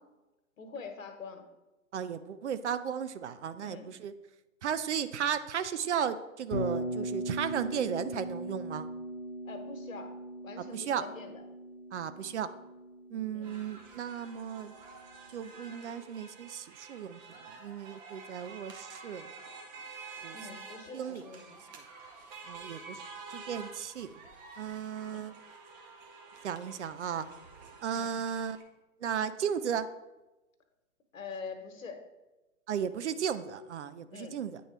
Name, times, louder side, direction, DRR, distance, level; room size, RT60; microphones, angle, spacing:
voice 1, 0.6-1.4 3.6-3.9 9.4-10.2 10.4-11.4 13.3-13.5 20.3-21.7 25.1-25.3 27.9-28.2 31.1-32.1 34.1-34.4, left 4 dB, 65° left, 6 dB, 1.2 m, -44 dB
voice 2, 1.9-4.1 4.6-8.9 10.7-11.0 11.9-12.5 13.1-14.7 15.3-17.2 17.6-19.3 20.2-20.4 20.9-21.3 22.5-23.0 23.3-24.1 24.6-25.3 26.4-27.3 27.8-28.6 29.0-29.9 32.7-34.6, right 8 dB, 55° right, 12 dB, 0.5 m, -35 dB
Bass guitar, 6.5-14.6, equal, 20° left, 1.3 m, -39 dB
sound 1, 13.4-28.6, right 4 dB, 30° right, 0.9 m, -49 dB
9.2 x 3.8 x 3.3 m, 1.1 s
figure-of-eight pair, 125°, 42 cm